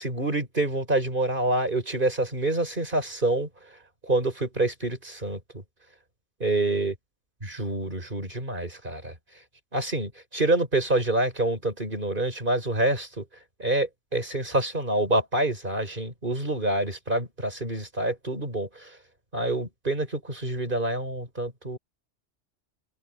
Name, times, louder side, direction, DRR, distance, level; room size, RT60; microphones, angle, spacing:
voice 1, 0.0-3.5 4.0-5.4 6.4-6.9 7.4-9.1 9.7-13.2 13.6-18.9 19.3-21.8, right 2 dB, 45° right, 5.5 m, -27 dB
open air
omnidirectional pair, 1.2 m